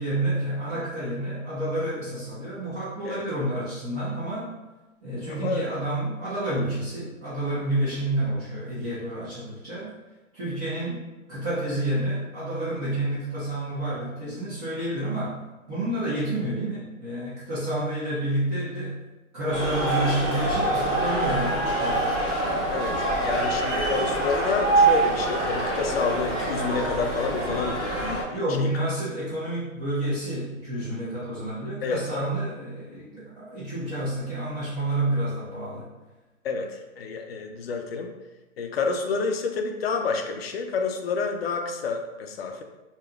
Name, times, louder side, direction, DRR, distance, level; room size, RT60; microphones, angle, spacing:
voice 1, 0.0-4.5 5.0-9.9 10.3-15.4 15.7-19.0 19.3-22.3 28.3-35.9, right 1 dB, 25° right, -11 dB, 1.0 m, -29 dB
voice 2, 5.3-5.7 22.7-28.7 31.8-32.3 36.4-38.1 38.6-42.6, left 4 dB, 50° left, 4 dB, 0.5 m, -29 dB
sound 1, 19.5-28.2, right 2 dB, 10° right, 0.6 m, -25 dB
4.6 x 2.9 x 2.3 m, 1.1 s
hypercardioid pair, 140°, 42 cm